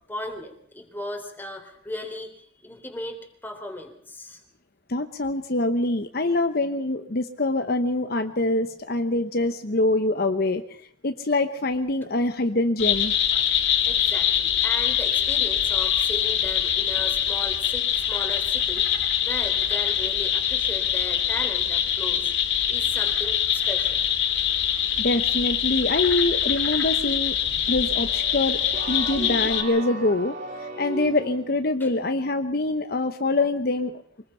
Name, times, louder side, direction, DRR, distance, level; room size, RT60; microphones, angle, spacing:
voice 1, 0.1-4.4 13.8-24.6 31.8-31.9, left 1 dB, 10° left, 3 dB, 3.4 m, -37 dB
voice 2, 4.9-10.8 11.0-13.1 25.0-27.4 27.7-28.6 28.9-30.3 30.8-34.0, left 2 dB, 55° left, 7 dB, 1.0 m, -24 dB
sound 1, 12.8-29.6, left 9 dB, 85° left, 3.1 m, -24 dB
sound 2, 27.4-31.6, right 2 dB, 75° right, 5.1 m, -45 dB
sound 3, 28.7-31.6, right 1 dB, 45° right, 1.8 m, -36 dB
25.0 x 19.5 x 5.7 m, 0.66 s
head